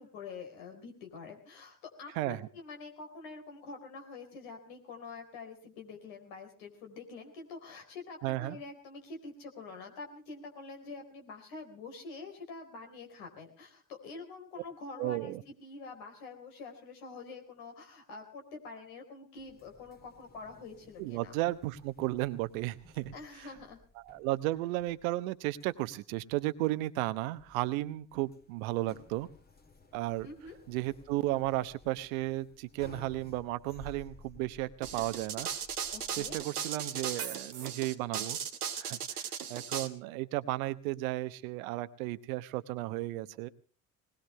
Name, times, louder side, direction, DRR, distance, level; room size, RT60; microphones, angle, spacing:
voice 1, 0.0-21.4 23.1-23.8 30.2-30.6 35.9-36.4, left 4 dB, 65° left, 3 dB, 4.2 m, -46 dB
voice 2, 2.2-2.5 8.2-8.6 15.0-15.4 21.0-23.1 24.1-29.3 29.9-30.3 30.7-35.5 36.2-38.4 38.8-43.5, right 17 dB, 65° right, 14 dB, 1.0 m, -34 dB
sound 1, 19.4-36.3, left 4 dB, 20° left, 2.1 m, -57 dB
sound 2, 34.8-39.9, right 8 dB, 85° right, 1.2 m, -37 dB
20.5 x 20.0 x 3.2 m, 0.36 s
figure-of-eight pair, 60°, 44 cm